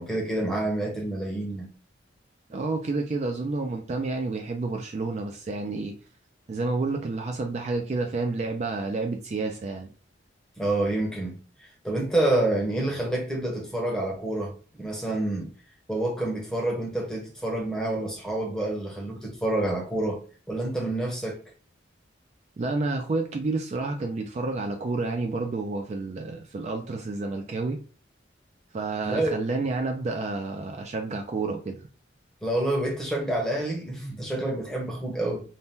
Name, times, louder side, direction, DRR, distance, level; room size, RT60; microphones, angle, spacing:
voice 1, 0.0-1.7 10.6-14.5 14.8-15.5 15.9-20.2 20.5-21.4 29.0-29.4 32.4-35.4, right 1 dB, 5° left, 0.7 m, -28 dB
voice 2, 2.5-6.0 6.5-9.9 22.6-27.8 28.7-31.8, right 3 dB, 35° right, 0.3 m, -30 dB
2.7 x 2.1 x 3.4 m
head